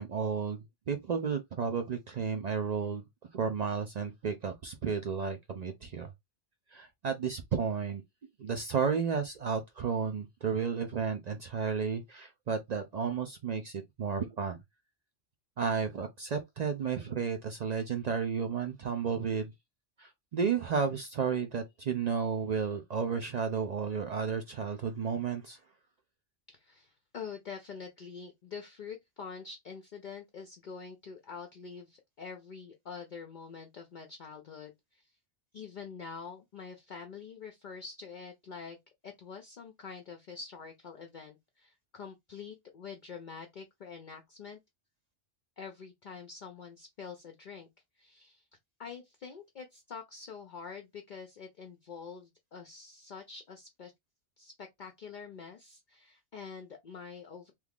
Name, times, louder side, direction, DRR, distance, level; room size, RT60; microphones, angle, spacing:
voice 1, 0.0-3.0 3.3-6.1 6.7-8.0 8.4-14.6 15.6-19.5 20.0-25.6, right 6 dB, 60° right, 0.4 m, -32 dB
voice 2, 26.5-35.1 35.5-38.8 39.0-44.6 45.6-47.7 48.0-48.4 48.8-53.9 54.4-57.5, left 5 dB, 55° left, 0.6 m, -46 dB
3.0 x 2.4 x 3.4 m
omnidirectional pair, 1.2 m